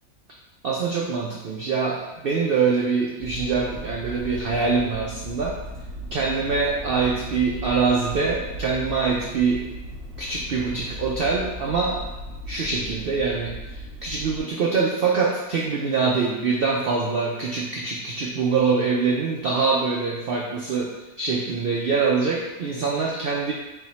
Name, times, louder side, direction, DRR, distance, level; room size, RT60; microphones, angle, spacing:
voice 1, 0.6-5.6 6.1-9.7 10.2-12.0 12.5-23.5, right 4 dB, 90° right, -2 dB, 0.5 m, -24 dB
sound 1, 3.2-14.4, equal, 45° right, 1.3 m, -37 dB
3.5 x 2.8 x 4.1 m, 1.1 s
omnidirectional pair, 1.6 m